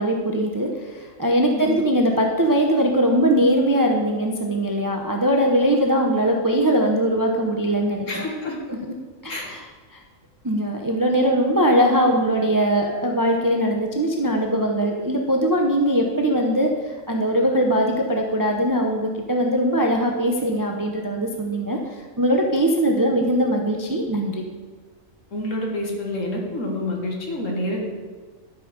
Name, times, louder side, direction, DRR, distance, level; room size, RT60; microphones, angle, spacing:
voice 1, 0.0-8.2 8.7-8.9 9.2-9.7 9.9-10.0 10.4-21.8 22.2-24.4, equal, 20° right, 2 dB, 0.6 m, -21 dB
voice 2, 1.5-1.8 8.1-8.6 9.3-9.5 25.3-27.9, left 1 dB, 70° left, -1 dB, 2.1 m, -28 dB
12.5 x 5.0 x 5.2 m, 1.4 s
omnidirectional pair, 1.4 m